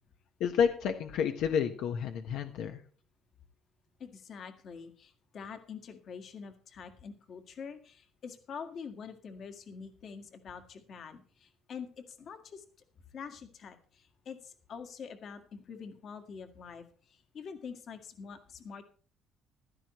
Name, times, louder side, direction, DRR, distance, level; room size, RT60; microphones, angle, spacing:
voice 1, 0.4-2.8, left 7 dB, 65° left, 5 dB, 1.3 m, -30 dB
voice 2, 4.0-12.6 13.1-18.8, left 6 dB, 35° left, 7 dB, 1.8 m, -46 dB
15.5 x 13.0 x 3.1 m, 0.42 s
cardioid pair, 180°, 0 cm